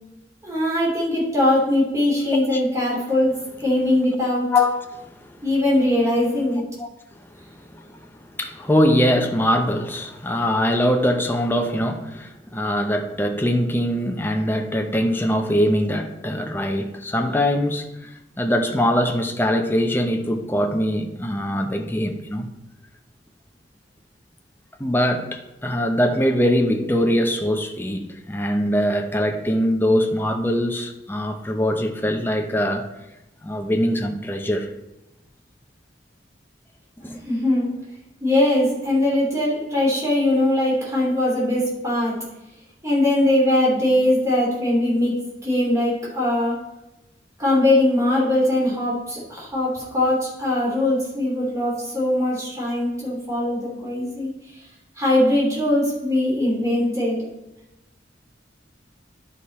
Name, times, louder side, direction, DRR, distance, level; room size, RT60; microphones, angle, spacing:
voice 1, 0.4-3.3 3.6-4.5 5.4-6.6 37.2-37.7 38.2-42.2 42.8-45.1 45.4-46.6 47.4-54.3 55.0-57.2, left 1 dB, 15° right, 2.9 m, -21 dB
voice 2, 4.5-5.4 6.8-6.9 7.7-22.5 24.8-32.9 33.4-34.7 37.0-37.2, equal, 10° left, 0.6 m, -22 dB
10.5 x 5.1 x 4.2 m
head